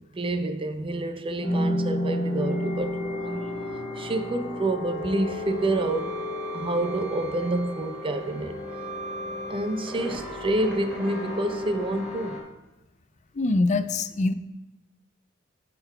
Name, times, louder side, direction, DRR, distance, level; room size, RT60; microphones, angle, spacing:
voice 1, 0.1-3.5 3.7-6.1 6.5-8.5 9.5-12.4, right 2 dB, 25° right, 0.5 m, -28 dB
sound 1, 1.4-12.4, left 1 dB, 5° right, 2.7 m, -32 dB
voice 2, 13.3-14.3, left 2 dB, 35° left, 0.4 m, -23 dB
10.0 x 3.9 x 5.6 m
head